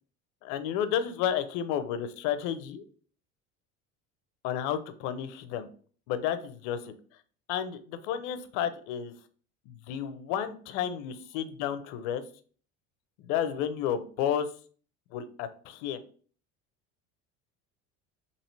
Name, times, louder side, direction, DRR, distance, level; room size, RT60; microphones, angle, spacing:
voice 1, 0.4-2.8 4.4-5.7 6.1-6.9 7.5-9.1 9.9-12.2 13.2-14.5 15.1-16.0, left 9 dB, 70° left, 11 dB, 0.5 m, -31 dB
2.9 x 2.8 x 3.1 m, 0.44 s
hypercardioid pair, 80°, 35 cm